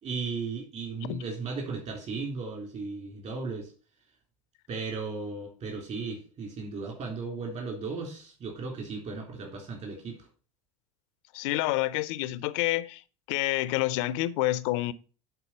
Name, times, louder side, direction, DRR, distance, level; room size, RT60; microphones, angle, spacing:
voice 1, 0.0-3.7 4.7-10.3, right 4 dB, 45° right, 3.7 m, -36 dB
voice 2, 11.3-13.0 13.3-14.9, left 17 dB, 65° left, 0.6 m, -28 dB
10.5 x 4.1 x 5.7 m
hypercardioid pair, 80°, 17 cm